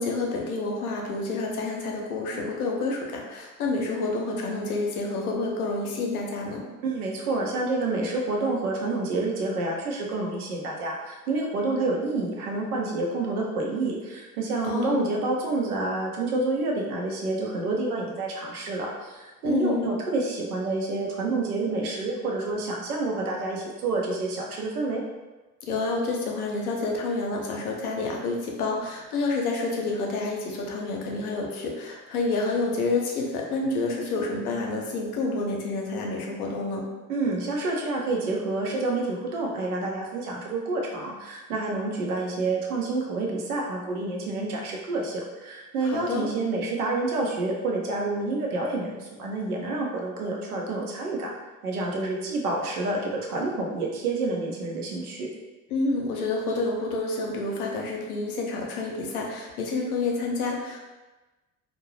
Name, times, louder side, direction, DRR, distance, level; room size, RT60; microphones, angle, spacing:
voice 1, 0.0-6.7 14.6-15.1 19.4-19.9 25.6-36.8 45.8-46.3 55.7-60.8, left 3 dB, 75° left, 0 dB, 0.6 m, -29 dB
voice 2, 6.8-25.0 37.1-51.3 51.6-55.3, right 2 dB, 75° right, -1 dB, 0.7 m, -28 dB
2.6 x 2.2 x 3.0 m, 1.2 s
figure-of-eight pair, 60°, 45 cm